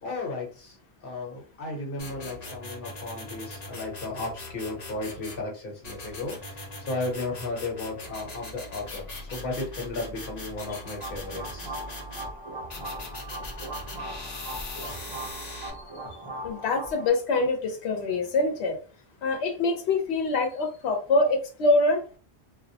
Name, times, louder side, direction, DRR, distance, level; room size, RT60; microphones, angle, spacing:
voice 1, 0.0-0.7 1.0-9.0 9.3-11.7, left 2 dB, 60° left, -1 dB, 1.1 m, -34 dB
sound 1, 2.0-5.4 5.8-12.3 12.7-15.7, left 2 dB, 45° left, 0.7 m, -40 dB
sound 2, 10.6-17.1, right 1 dB, 30° right, 0.5 m, -39 dB
voice 2, 16.4-18.8 19.2-22.0, left 2 dB, 90° left, 4 dB, 0.9 m, -24 dB
2.3 x 2.0 x 2.7 m, 0.37 s
omnidirectional pair, 1.1 m